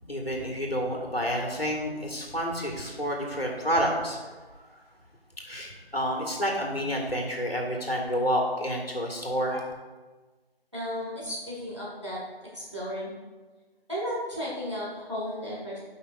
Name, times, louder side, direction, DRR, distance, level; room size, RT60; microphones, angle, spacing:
voice 1, 0.1-4.3 4.7-4.8 5.4-9.7, equal, 70° left, 0 dB, 1.8 m, -29 dB
voice 2, 10.7-13.2 13.9-15.8, equal, 30° right, -7 dB, 1.9 m, -34 dB
12.0 x 5.6 x 2.5 m, 1.3 s
figure-of-eight pair, 180°, 31 cm